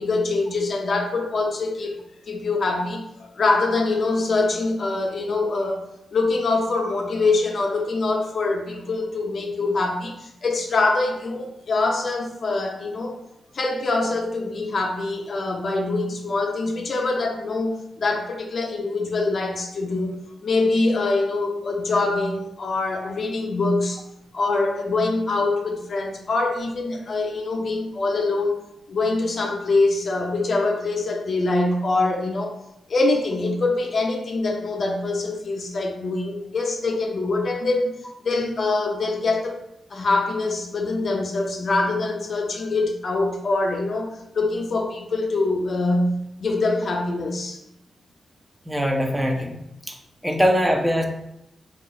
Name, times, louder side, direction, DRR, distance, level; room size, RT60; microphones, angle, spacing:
voice 1, 0.0-2.0 2.3-5.8 6.1-13.2 13.5-24.0 24.3-28.6 28.9-32.6 32.9-38.0 38.2-39.6 39.9-47.6, left 3 dB, 55° left, 2 dB, 0.5 m, -24 dB
voice 2, 48.7-49.6 50.2-51.0, equal, 5° right, 2 dB, 0.5 m, -21 dB
2.9 x 2.3 x 4.1 m, 0.83 s
cardioid pair, 70°, 0 cm